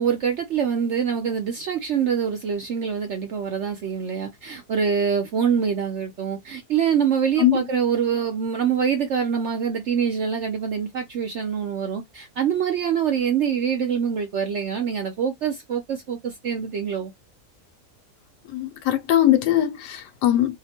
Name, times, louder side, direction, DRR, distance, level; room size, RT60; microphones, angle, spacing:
voice 1, 0.0-17.1, right 7 dB, 65° right, 0.7 m, -25 dB
voice 2, 18.5-20.6, left 12 dB, 90° left, 1.3 m, -21 dB
2.8 x 2.1 x 4.1 m
omnidirectional pair, 1.7 m